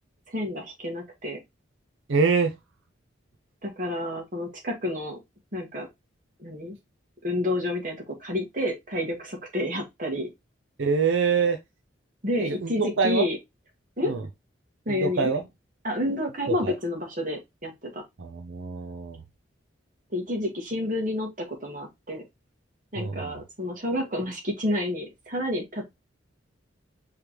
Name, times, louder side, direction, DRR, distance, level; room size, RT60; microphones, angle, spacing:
voice 1, 0.3-1.4 3.6-5.2 5.5-5.9 6.4-6.8 7.2-10.3 12.2-13.4 14.0-14.2 14.9-15.3 15.8-18.0 20.1-22.2 22.9-25.8, left 1 dB, 40° right, 1.7 m, -29 dB
voice 2, 2.1-2.5 10.8-11.6 12.4-13.3 14.0-14.2 14.9-15.4 16.6-16.7 18.2-19.2 23.0-23.4, right 5 dB, 75° right, 0.6 m, -25 dB
5.0 x 3.3 x 3.0 m
head